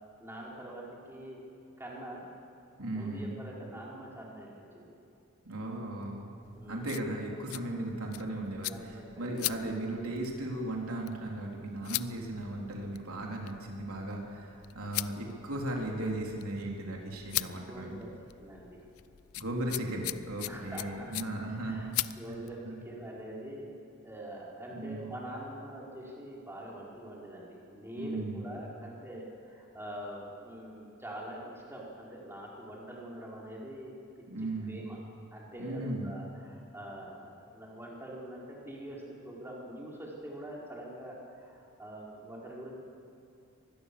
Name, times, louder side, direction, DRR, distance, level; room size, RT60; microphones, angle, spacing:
voice 1, 0.2-1.4 1.8-2.2 2.9-4.9 6.5-6.9 8.7-9.3 17.5-18.1 18.3-18.8 20.5-21.1 21.6-23.8 24.0-34.0 34.7-35.0 35.3-42.7, right 1 dB, 10° right, -4 dB, 4.8 m, -44 dB
voice 2, 2.8-3.4 5.4-6.3 6.6-18.0 19.4-22.4 22.6-22.8 24.7-25.1 28.0-28.4 34.3-34.8 35.6-36.1, right 1 dB, 80° right, 0 dB, 3.8 m, -36 dB
sound 1, 6.4-22.6, left 16 dB, 75° left, 0.6 m, -41 dB
25.0 x 20.0 x 7.0 m, 2.7 s
head